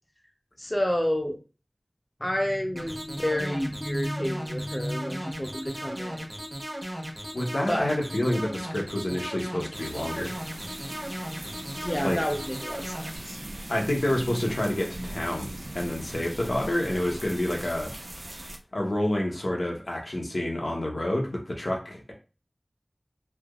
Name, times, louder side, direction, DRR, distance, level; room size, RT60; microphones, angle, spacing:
voice 1, 0.6-1.4 2.2-6.3 7.7-7.9 11.8-13.4, equal, 20° left, 2 dB, 0.6 m, -29 dB
sound 1, 2.7-13.2, equal, 30° right, 1.0 m, -36 dB
voice 2, 7.3-10.4 12.0-12.2 13.7-15.5 15.7-17.9 18.7-22.1, left 1 dB, 75° left, -1 dB, 0.9 m, -28 dB
sound 2, 9.7-18.6, right 1 dB, 50° right, 0.5 m, -40 dB
3.3 x 2.8 x 2.4 m, 0.34 s
wide cardioid pair, 50°, 0 cm